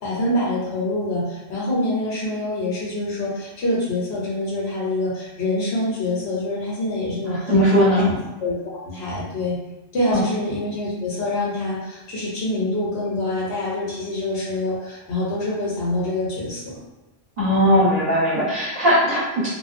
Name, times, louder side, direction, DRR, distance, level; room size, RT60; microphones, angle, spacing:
voice 1, 0.0-9.6 9.9-16.8, left 1 dB, 70° left, -6 dB, 1.0 m, -26 dB
voice 2, 7.3-8.1 10.1-10.2 17.4-19.5, equal, 40° right, -11 dB, 1.1 m, -19 dB
2.5 x 2.0 x 2.5 m, 1.0 s
omnidirectional pair, 1.1 m